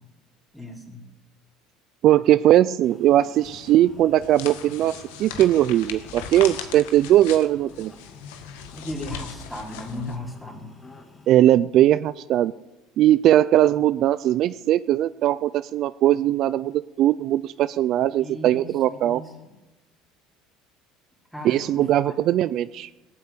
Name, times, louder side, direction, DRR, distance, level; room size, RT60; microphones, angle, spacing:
voice 1, 0.5-1.0 8.7-10.7 18.2-19.5 21.3-22.2, left 1 dB, 5° left, -1 dB, 4.0 m, -36 dB
voice 2, 2.0-7.9 11.3-12.5 13.0-19.2 21.4-22.9, right 13 dB, 55° right, 15 dB, 0.4 m, -20 dB
sound 1, 2.8-11.4, left 3 dB, 20° left, 2.0 m, -50 dB
sound 2, 3.4-10.2, left 8 dB, 90° left, 1.5 m, -39 dB
18.0 x 8.4 x 8.4 m, 1.1 s
supercardioid pair, 110°, 0 cm